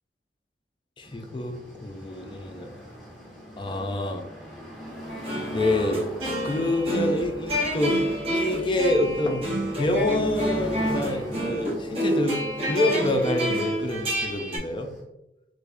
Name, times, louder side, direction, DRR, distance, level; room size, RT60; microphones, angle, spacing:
voice 1, 1.0-2.7 3.6-4.3 5.1-6.1 6.4-9.4 9.8-12.4 12.7-14.9, left 1 dB, 25° left, 4 dB, 0.4 m, -27 dB
sound 1, 1.0-15.0, equal, ahead, 1.1 m, -40 dB
sound 2, 5.1-14.6, equal, 30° right, 0.9 m, -29 dB
3.4 x 3.3 x 2.6 m, 0.91 s
head